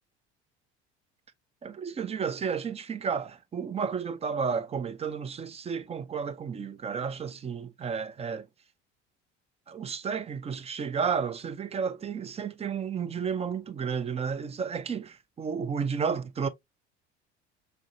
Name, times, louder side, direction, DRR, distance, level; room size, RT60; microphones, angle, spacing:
voice 1, 1.6-8.5 9.7-16.5, right 6 dB, 20° right, 0.4 m, -32 dB
5.2 x 2.6 x 2.6 m
figure-of-eight pair, 65°, 35 cm